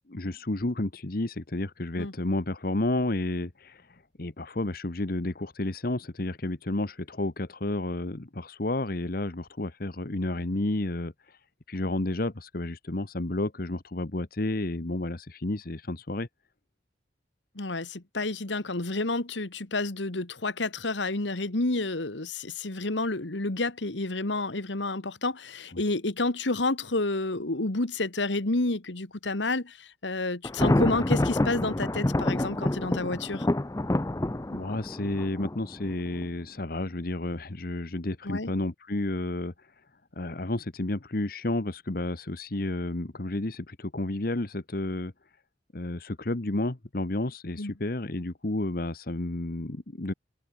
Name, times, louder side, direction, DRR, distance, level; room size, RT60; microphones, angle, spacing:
voice 1, 0.1-11.4 11.7-16.3 25.7-25.8 34.5-39.7 40.2-45.1 45.7-50.1, left 2 dB, 55° left, 1.2 m, -31 dB
voice 2, 17.6-33.5 38.3-38.5 47.6-47.7, left 2 dB, 80° left, 1.9 m, -30 dB
Thunder, 30.4-36.3, left 1 dB, 20° left, 0.5 m, -27 dB
open air
head